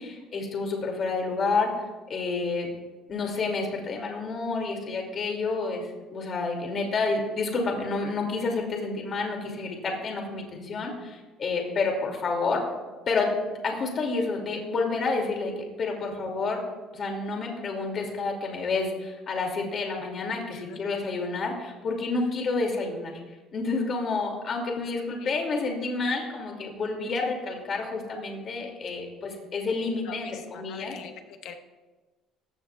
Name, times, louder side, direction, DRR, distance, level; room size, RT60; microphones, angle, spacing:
voice 1, 0.0-1.7 2.1-2.7 3.1-12.6 13.1-16.6 16.9-23.2 23.5-30.9, left 3 dB, 35° left, 2 dB, 2.5 m, -29 dB
voice 2, 20.5-21.1 25.1-25.6 30.0-31.5, left 8 dB, 60° left, 5 dB, 1.3 m, -44 dB
18.0 x 15.5 x 2.4 m, 1.2 s
cardioid pair, 155°, 0 cm